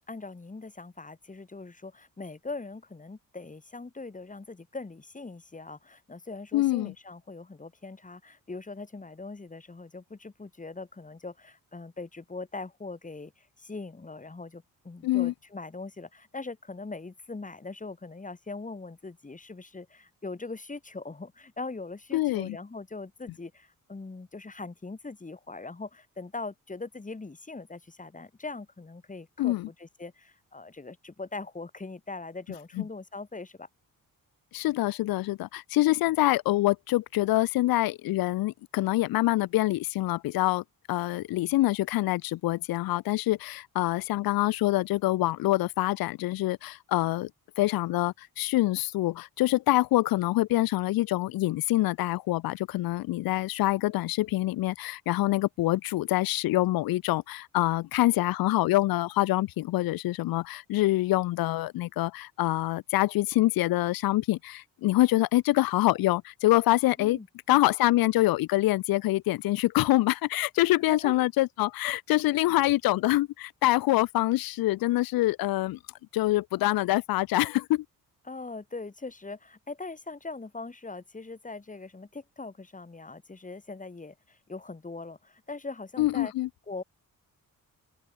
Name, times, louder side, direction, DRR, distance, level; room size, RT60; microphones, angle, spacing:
voice 1, 0.0-33.7 67.0-67.3 70.9-71.2 78.3-86.3 86.7-86.8, left 3 dB, 20° left, 2.5 m, -41 dB
voice 2, 6.5-6.9 15.0-15.3 22.1-22.6 29.4-29.7 32.8-32.9 34.5-47.3 47.6-67.2 67.5-75.8 76.1-77.8 86.0-86.5, left 17 dB, 80° left, 0.5 m, -25 dB
open air
cardioid pair, 85°, 35 cm